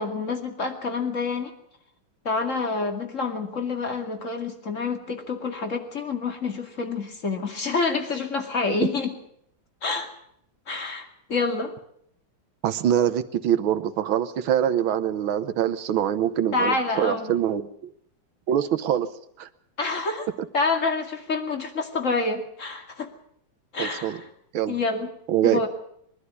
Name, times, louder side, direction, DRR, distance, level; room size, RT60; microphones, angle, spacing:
voice 1, 0.0-1.5 2.2-9.1 9.8-10.1 10.7-11.7 16.5-17.3 19.8-20.3 20.5-23.1 23.7-24.3 24.7-25.1 25.4-25.7, left 4 dB, 40° left, 5 dB, 2.6 m, -27 dB
voice 2, 12.6-17.9 18.5-19.1 19.4-19.5 23.8-24.2 24.5-24.7 25.3-25.6, right 10 dB, 80° right, 11 dB, 1.8 m, -24 dB
22.5 x 12.0 x 9.7 m, 0.71 s
omnidirectional pair, 2.2 m